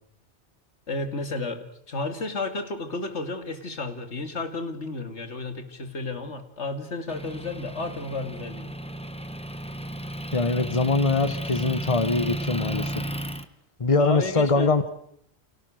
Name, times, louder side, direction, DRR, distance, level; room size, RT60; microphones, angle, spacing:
voice 1, 0.9-8.7 14.0-14.7, left 2 dB, 80° left, 7 dB, 2.7 m, -32 dB
Motor vehicle (road) / Engine, 7.1-13.4, right 1 dB, 5° left, 1.2 m, -33 dB
voice 2, 10.3-13.0 13.8-14.9, left 3 dB, 30° left, 12 dB, 1.3 m, -23 dB
29.5 x 25.5 x 6.4 m, 0.68 s
omnidirectional pair, 1.2 m